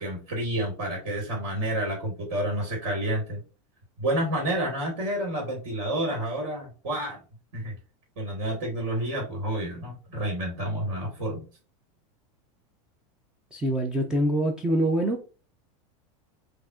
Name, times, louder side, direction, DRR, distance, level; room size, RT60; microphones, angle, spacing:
voice 1, 0.0-3.4 4.0-7.2 7.5-7.7 8.2-11.4, right 1 dB, 50° right, 2.1 m, -29 dB
voice 2, 13.5-15.2, right 1 dB, 5° right, 0.4 m, -25 dB
5.5 x 2.5 x 2.5 m
supercardioid pair, 160°, 18 cm